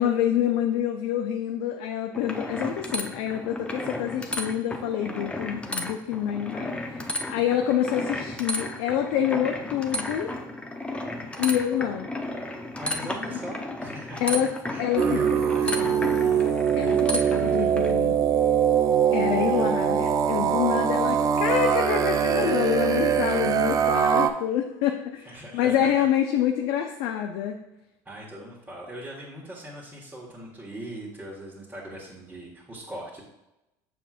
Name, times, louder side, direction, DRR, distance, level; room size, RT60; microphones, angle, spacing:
voice 1, 0.0-10.3 11.4-12.1 14.2-14.5 14.8-15.2 15.6-16.3 16.7-18.2 19.1-27.6, left 10 dB, 70° left, 3 dB, 0.5 m, -27 dB
sound 1, 2.1-17.9, left 1 dB, 10° left, 0.7 m, -33 dB
voice 2, 12.8-14.3 14.7-16.3 17.1-17.7 19.1-19.6 25.2-26.1 28.0-33.2, right 1 dB, 15° right, -6 dB, 1.6 m, -40 dB
sound 2, 15.0-24.3, right 8 dB, 35° right, 0.5 m, -23 dB
6.9 x 5.9 x 2.5 m, 0.93 s
hypercardioid pair, 85°, 10 cm